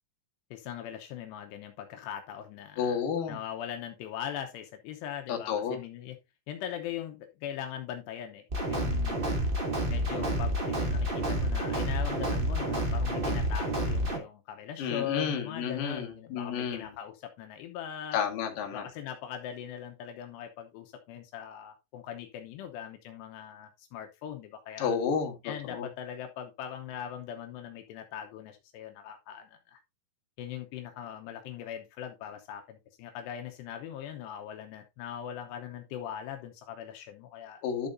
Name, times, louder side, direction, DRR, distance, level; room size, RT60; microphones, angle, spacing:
voice 1, 0.5-3.0 3.3-6.2 6.5-8.4 8.7-9.3 9.9-18.2 18.7-25.0 25.4-29.8 30.4-37.6, left 10 dB, 80° left, 5 dB, 3.0 m, -40 dB
voice 2, 2.8-3.4 5.3-5.8 14.8-16.9 18.1-18.8 24.8-25.9 37.6-37.9, left 7 dB, 60° left, 3 dB, 2.9 m, -31 dB
sound 1, 8.5-14.2, right 1 dB, 25° right, 1.2 m, -29 dB
11.5 x 6.8 x 2.6 m, 0.23 s
omnidirectional pair, 4.9 m